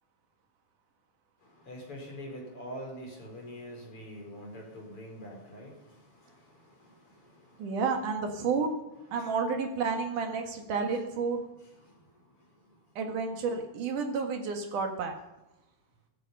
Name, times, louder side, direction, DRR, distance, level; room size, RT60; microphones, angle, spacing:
voice 1, 1.4-7.8 9.2-9.3 11.6-12.8, equal, 35° left, 0 dB, 5.4 m, -46 dB
voice 2, 7.6-8.7 9.1-11.4 13.0-15.1, right 5 dB, 60° right, 4 dB, 3.0 m, -31 dB
15.5 x 13.5 x 5.5 m, 1.0 s
omnidirectional pair, 4.4 m